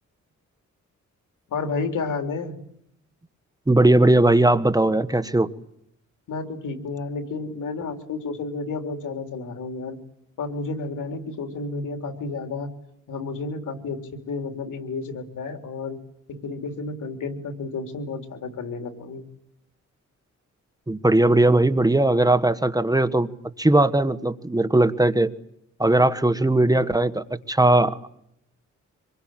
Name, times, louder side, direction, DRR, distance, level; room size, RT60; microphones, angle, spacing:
voice 1, 1.5-2.6 6.3-10.0 10.4-12.7 13.1-16.0 16.3-19.2, left 3 dB, 90° left, 6 dB, 3.6 m, -31 dB
voice 2, 3.7-5.5 20.9-23.3 23.6-25.3 25.8-28.1, right 2 dB, 10° right, 11 dB, 1.4 m, -19 dB
26.0 x 22.0 x 9.1 m, 0.74 s
cardioid pair, 95°, 30 cm